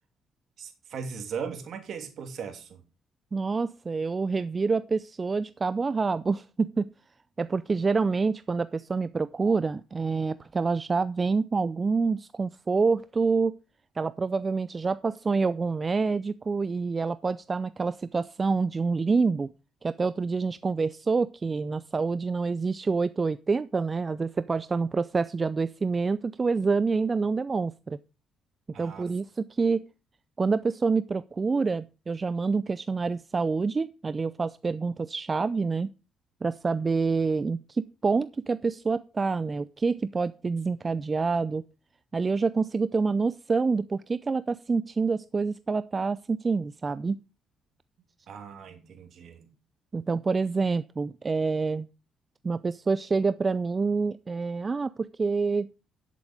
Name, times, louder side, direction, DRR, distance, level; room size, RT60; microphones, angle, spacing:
voice 1, 0.6-2.8 28.7-29.1 48.3-49.5, right 6 dB, 65° right, 2.6 m, -38 dB
voice 2, 3.3-6.9 7.4-13.6 14.0-19.5 19.8-28.0 28.8-29.9 30.4-35.9 36.4-41.6 42.1-47.2 49.9-51.9 52.4-55.7, right 4 dB, 35° right, 0.5 m, -27 dB
10.5 x 7.7 x 5.0 m
supercardioid pair, 60°, 0 cm